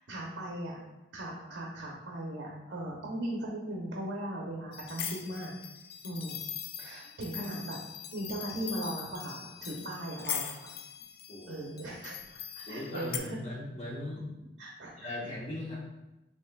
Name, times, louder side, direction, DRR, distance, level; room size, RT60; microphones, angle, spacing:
voice 1, 0.1-0.8 1.1-5.5 6.0-6.4 6.8-7.8 8.1-10.7 11.5-12.2 12.6-13.4 14.6-15.1, right 1 dB, 75° right, -2 dB, 0.7 m, -38 dB
sound 1, 4.7-13.2, left 9 dB, 55° left, 0.4 m, -41 dB
voice 2, 11.3-11.6 12.7-14.3 15.0-15.7, left 1 dB, 35° left, -6 dB, 1.2 m, -39 dB
6.5 x 2.9 x 2.3 m, 0.97 s
head